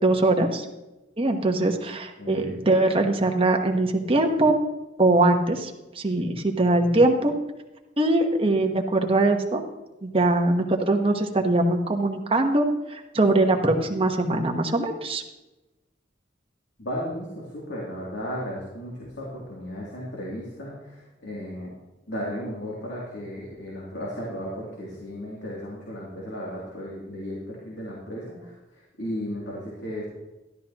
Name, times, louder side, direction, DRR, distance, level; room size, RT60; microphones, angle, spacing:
voice 1, 0.0-0.6 1.2-4.6 5.0-5.7 6.0-7.3 8.0-9.6 10.0-12.6 12.9-15.2, right 2 dB, 30° right, 4 dB, 1.1 m, -22 dB
voice 2, 2.2-2.6 16.8-21.7 22.1-30.0, equal, 80° left, -5 dB, 2.7 m, -35 dB
13.0 x 12.0 x 2.9 m, 1.0 s
head